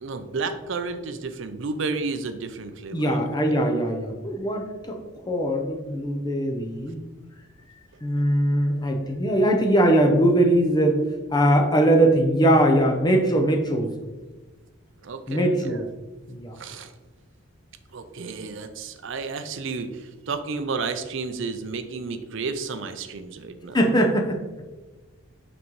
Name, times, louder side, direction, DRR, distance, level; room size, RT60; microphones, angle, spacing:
voice 1, 0.0-3.6 15.0-15.9 16.6-16.9 17.9-23.8, right 4 dB, 60° right, 9 dB, 0.5 m, -32 dB
voice 2, 2.9-5.0 5.3-7.0 8.0-11.0 11.3-13.9 15.3-15.9 16.3-16.6 23.7-24.6, right 1 dB, 20° left, 3 dB, 0.6 m, -21 dB
5.9 x 5.3 x 3.1 m, 1.2 s
head